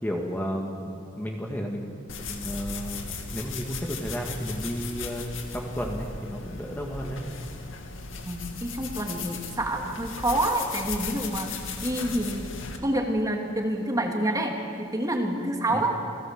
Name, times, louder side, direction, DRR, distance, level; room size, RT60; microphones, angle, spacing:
voice 1, 0.0-1.9 2.3-5.2 5.5-7.2 15.7-15.8, equal, 10° left, 0 dB, 1.9 m, -32 dB
sound 1, 2.1-12.8, left 4 dB, 80° left, 2.4 m, -37 dB
voice 2, 8.2-12.5 12.8-15.9, right 1 dB, 20° right, 2 dB, 2.5 m, -28 dB
28.5 x 17.0 x 7.6 m, 2.7 s
head